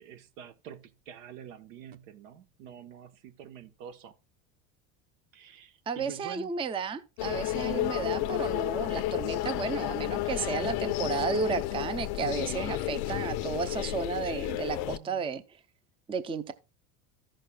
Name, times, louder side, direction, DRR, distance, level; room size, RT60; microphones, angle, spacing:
voice 1, 0.0-4.2 5.3-6.5 10.2-10.8 13.1-13.2 14.4-15.3, right 8 dB, 80° right, 1.1 m, -47 dB
voice 2, 5.9-15.4 16.1-16.5, right 5 dB, 15° right, 0.5 m, -33 dB
sound 1, 7.2-15.0, left 15 dB, 65° left, 0.6 m, -32 dB
14.5 x 6.5 x 2.2 m
supercardioid pair, 105°, 39 cm